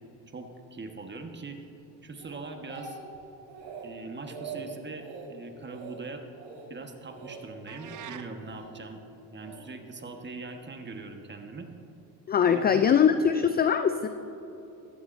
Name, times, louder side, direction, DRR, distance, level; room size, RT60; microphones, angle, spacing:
voice 1, 0.3-1.6 2.0-3.0 3.8-6.2 6.7-9.0 9.3-11.7 12.5-12.9, right 3 dB, 25° right, 4 dB, 1.4 m, -41 dB
Speech, 2.2-3.2 3.5-3.9 4.2-4.6 5.0-5.3 5.7-6.0 6.3-6.7 7.1-7.4 7.8-8.6 9.4-9.7, right 5 dB, 75° right, 2.7 m, -43 dB
sound 1, 7.7-8.3, right 9 dB, 40° right, 0.8 m, -43 dB
voice 2, 12.3-14.1, left 7 dB, 25° left, 10 dB, 0.3 m, -22 dB
14.5 x 13.0 x 2.7 m, 2.9 s
hypercardioid pair, 70°, 47 cm